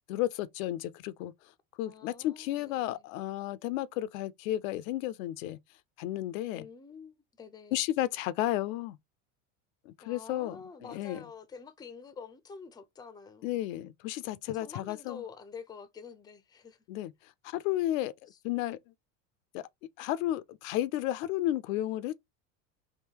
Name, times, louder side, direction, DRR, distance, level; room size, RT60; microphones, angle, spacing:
voice 1, 0.1-1.3 1.8-5.6 6.0-6.6 7.7-9.0 9.9-10.6 10.9-11.2 13.4-15.2 16.9-17.1 17.5-18.1 18.4-18.8 19.5-19.6 20.0-22.1, left 14 dB, 75° left, 0.5 m, -32 dB
voice 2, 1.9-3.1 6.5-7.8 10.0-13.6 14.5-16.8 18.3-18.4, left 6 dB, 10° left, 0.4 m, -48 dB
3.6 x 2.6 x 2.8 m
supercardioid pair, 100°, 41 cm